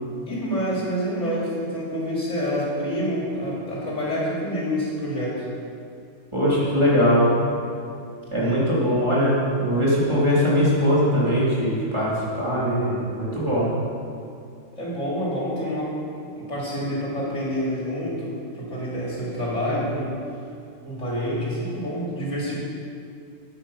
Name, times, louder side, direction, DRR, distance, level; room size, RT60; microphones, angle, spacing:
voice 1, 0.3-5.5 8.3-8.7 14.7-20.2 20.8-22.6, equal, 65° left, -6 dB, 3.4 m, -28 dB
voice 2, 6.3-7.3 8.3-9.3 9.6-12.1 12.4-13.7, equal, 20° right, -9 dB, 3.4 m, -21 dB
12.0 x 9.2 x 5.6 m, 2.5 s
omnidirectional pair, 1.3 m